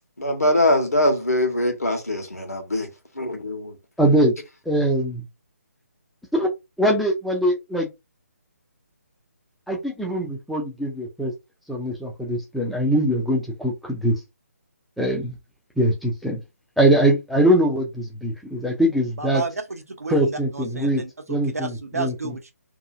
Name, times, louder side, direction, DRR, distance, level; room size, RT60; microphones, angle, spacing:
voice 1, 0.2-2.9 3.2-3.7, left 1 dB, 75° left, 1.1 m, -22 dB
voice 2, 4.0-4.4 4.7-5.2 6.3-6.5 6.8-7.9 9.7-11.3 11.7-14.2 15.0-15.3 15.8-16.4 16.8-19.4 20.1-21.0 21.3-22.4, right 1 dB, ahead, 0.4 m, -22 dB
voice 3, 19.2-21.1 21.5-22.5, right 3 dB, 70° right, 0.7 m, -31 dB
2.7 x 2.5 x 2.5 m
figure-of-eight pair, 145°, 8 cm